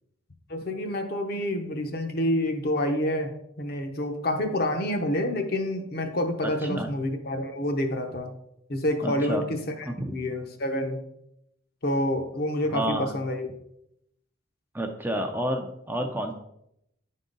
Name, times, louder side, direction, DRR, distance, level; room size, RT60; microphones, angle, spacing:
voice 1, 0.5-8.3 8.7-11.0 11.8-13.5, left 1 dB, 45° left, 5 dB, 0.8 m, -28 dB
voice 2, 6.4-6.9 9.0-9.4 9.9-10.1 12.7-13.1 14.7-16.3, right 1 dB, 10° right, 4 dB, 0.4 m, -30 dB
10.0 x 3.7 x 3.9 m, 0.79 s
head